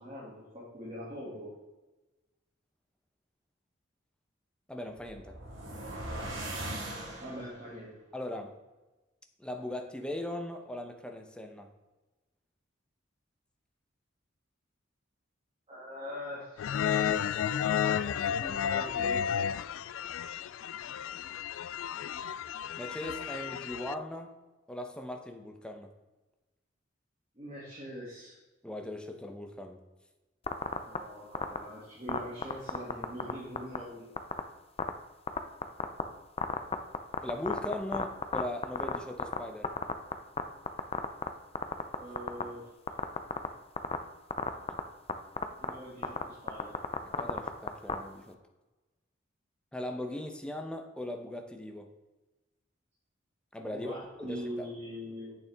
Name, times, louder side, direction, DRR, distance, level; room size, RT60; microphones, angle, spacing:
voice 1, 0.0-1.5 7.2-7.9 15.7-16.7 18.4-19.3 27.4-28.4 30.8-34.1 41.9-42.7 45.6-46.8 53.7-55.4, equal, 30° right, -7 dB, 2.3 m, -42 dB
voice 2, 4.7-5.3 8.1-8.6 9.4-11.7 22.8-24.3 24.7-25.9 28.6-29.8 37.2-39.7 47.2-48.4 49.7-51.9 53.5-53.9 54.2-54.7, left 1 dB, 5° left, 4 dB, 0.8 m, -39 dB
sound 1, 4.9-7.7, right 1 dB, 75° right, 1.9 m, -39 dB
sound 2, 16.6-23.9, left 8 dB, 80° left, 0.3 m, -32 dB
sound 3, 30.5-31.0 31.3-31.6 32.1-33.3 33.6-33.8 34.2-34.4 34.8-34.9 35.3-36.0 36.4-39.4 39.6-40.4 40.7-41.3 41.6-42.4 42.9-43.5 43.8-44.0 44.3-44.8 45.1-45.2 45.4-45.7 46.0-46.2 46.5-47.9, left 5 dB, 30° left, 0.6 m, -30 dB
8.6 x 6.7 x 3.5 m, 1.1 s
head